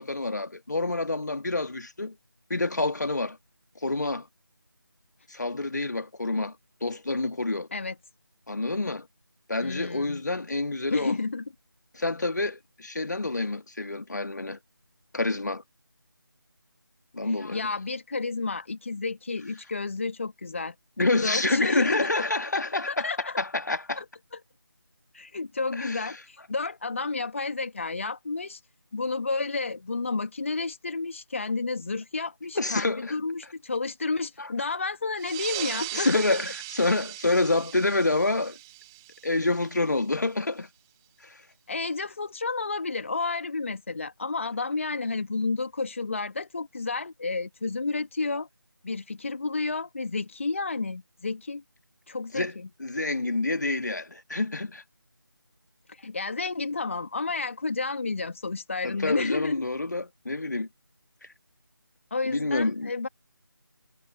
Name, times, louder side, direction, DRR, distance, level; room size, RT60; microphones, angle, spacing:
voice 1, 0.0-2.2 2.5-3.4 3.8-4.3 5.3-6.6 6.8-7.7 8.5-9.1 9.5-11.1 11.9-14.6 15.1-15.6 17.1-17.7 21.0-24.0 25.7-26.0 32.6-33.1 34.4-34.5 35.9-38.6 39.2-40.7 41.2-41.4 52.3-52.6 52.8-54.8 58.8-60.7 61.2-61.3 62.3-62.9, left 2 dB, 50° left, 1.9 m, -28 dB
voice 2, 9.6-10.2 10.9-11.4 17.2-20.8 21.2-22.2 22.9-23.4 24.0-24.1 25.1-28.6 28.9-36.4 41.7-48.5 48.8-51.6 52.1-52.7 55.9-59.6 62.1-63.1, left 3 dB, 35° left, 1.9 m, -31 dB
sound 1, 35.2-40.2, right 23 dB, 5° right, 1.7 m, -39 dB
figure-of-eight pair, 165°, 12 cm